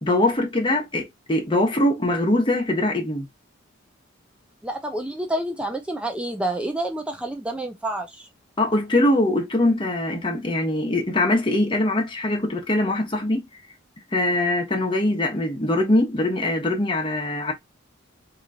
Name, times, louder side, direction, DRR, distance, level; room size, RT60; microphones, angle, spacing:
voice 1, 0.0-3.3 8.6-13.4 14.1-17.5, left 1 dB, 25° left, 1.1 m, -22 dB
voice 2, 4.6-8.3, right 1 dB, 5° right, 0.5 m, -28 dB
3.7 x 3.0 x 2.7 m
head